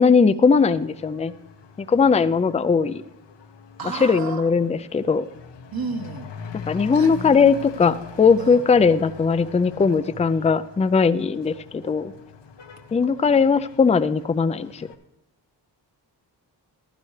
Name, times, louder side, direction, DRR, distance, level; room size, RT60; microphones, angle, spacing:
voice 1, 0.0-1.3 1.8-3.0 3.8-5.3 6.5-12.1 12.9-14.9, left 5 dB, 15° left, 12 dB, 0.4 m, -19 dB
Truck / Accelerating revving vroom, 0.5-14.9, left 7 dB, 80° left, 1.2 m, -42 dB
voice 2, 3.8-4.5 5.7-6.3 6.9-7.2 7.8-7.9 8.4-8.6, right 4 dB, 55° right, 6 dB, 1.4 m, -32 dB
15.0 x 11.5 x 3.3 m, 0.93 s
wide cardioid pair, 95°, 42 cm